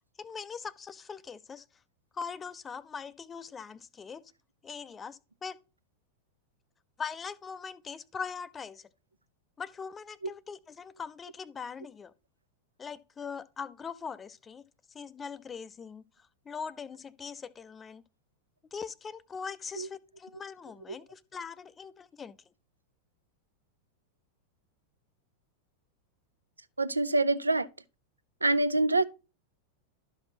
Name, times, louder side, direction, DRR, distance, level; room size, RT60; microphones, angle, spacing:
voice 1, 0.2-1.6 2.1-4.2 4.6-5.6 7.0-8.9 9.6-12.1 12.8-14.6 14.9-18.0 18.7-22.4, left 6 dB, 20° left, 0.4 m, -41 dB
voice 2, 26.8-27.7 28.4-29.0, right 2 dB, 80° right, 0.4 m, -26 dB
12.0 x 5.9 x 2.8 m
figure-of-eight pair, 90°, 0 cm